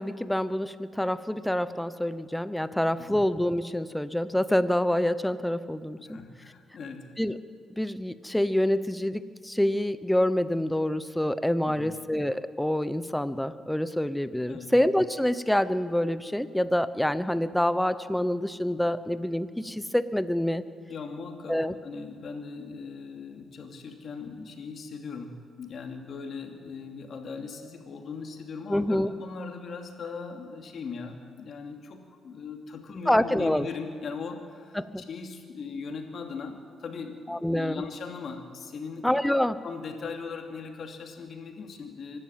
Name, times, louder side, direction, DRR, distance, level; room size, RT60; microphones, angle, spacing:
voice 1, 0.0-6.2 7.2-7.4 7.8-20.6 21.5-21.7 28.7-29.1 33.1-33.7 34.7-35.0 37.3-37.8 39.0-39.6, left 1 dB, 5° left, 14 dB, 0.8 m, -26 dB
voice 2, 6.0-7.1 11.7-12.0 14.5-14.7 20.9-42.2, left 5 dB, 55° left, 4 dB, 2.7 m, -39 dB
24.5 x 12.0 x 9.1 m, 2.1 s
cardioid pair, 90°, 0 cm